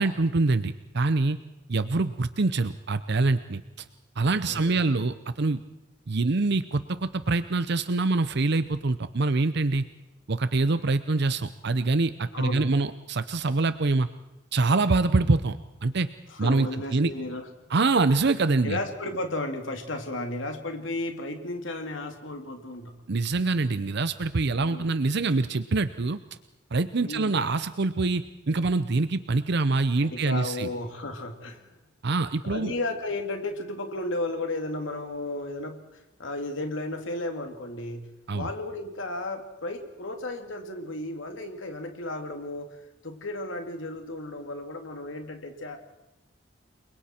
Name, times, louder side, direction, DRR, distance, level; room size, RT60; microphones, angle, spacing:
voice 1, 0.0-1.4 1.7-3.6 4.2-5.6 6.1-9.8 10.3-14.1 14.5-16.1 16.4-17.1 17.7-18.8 23.1-26.2 26.7-30.7 32.0-32.7 38.3-38.5, right 3 dB, 60° right, 12 dB, 0.7 m, -25 dB
voice 2, 4.4-5.0 12.3-12.8 16.3-17.4 18.6-22.9 24.6-24.9 27.0-27.4 30.0-31.6 32.4-38.1 38.3-45.8, left 2 dB, 80° left, 5 dB, 2.5 m, -34 dB
29.5 x 23.0 x 4.4 m, 0.99 s
head